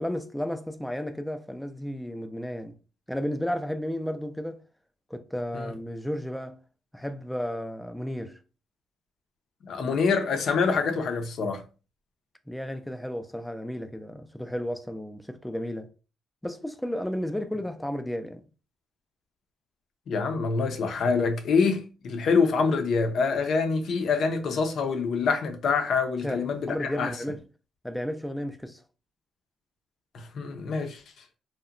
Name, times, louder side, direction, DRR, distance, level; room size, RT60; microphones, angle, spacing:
voice 1, 0.0-2.8 3.1-4.6 5.1-6.6 6.9-8.4 12.5-15.9 16.4-18.5 26.2-26.4 26.7-27.4 27.8-28.8, equal, 5° left, 0.3 m, -33 dB
voice 2, 9.6-11.6 20.1-27.1 30.1-31.0, left 5 dB, 65° left, 0.5 m, -26 dB
2.8 x 2.1 x 2.4 m
cardioid pair, 90°, 0 cm